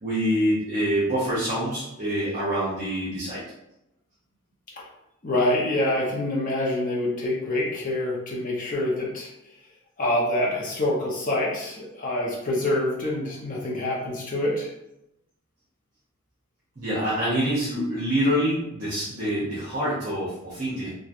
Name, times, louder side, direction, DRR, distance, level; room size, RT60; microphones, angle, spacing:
voice 1, 0.0-3.4 16.8-20.9, equal, 35° right, -9 dB, 0.7 m, -26 dB
voice 2, 5.2-9.3 10.0-14.7, left 1 dB, 35° left, -4 dB, 0.7 m, -26 dB
3.0 x 2.3 x 2.5 m, 0.85 s
head